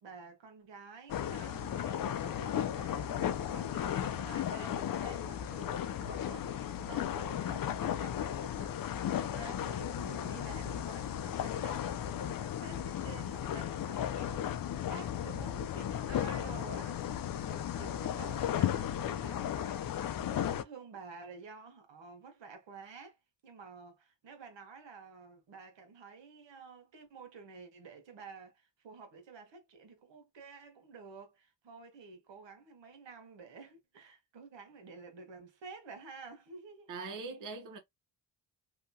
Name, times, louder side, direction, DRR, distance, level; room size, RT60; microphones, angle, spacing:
voice 1, 0.0-14.5 14.9-36.9, right 4 dB, 70° right, 1.1 m, -51 dB
sound 1, 1.1-20.6, left 10 dB, 50° left, 0.5 m, -35 dB
voice 2, 36.9-37.8, right 4 dB, 45° right, 0.8 m, -41 dB
2.8 x 2.2 x 2.6 m
cardioid pair, 70°, 45 cm